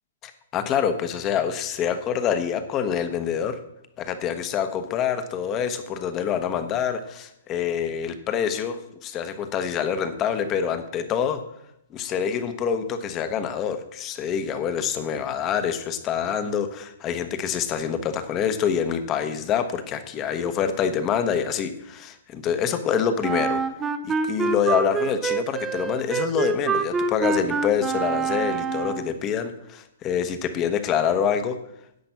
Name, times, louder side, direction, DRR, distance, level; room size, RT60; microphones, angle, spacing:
voice 1, 0.2-3.6 4.0-11.4 11.9-23.6 24.0-31.6, left 8 dB, 25° left, 9 dB, 1.1 m, -26 dB
Wind instrument woodwind instrument, 23.2-29.2, right 4 dB, 15° right, 0.8 m, -26 dB
10.5 x 7.6 x 5.9 m, 0.81 s
hypercardioid pair, 140°, 0 cm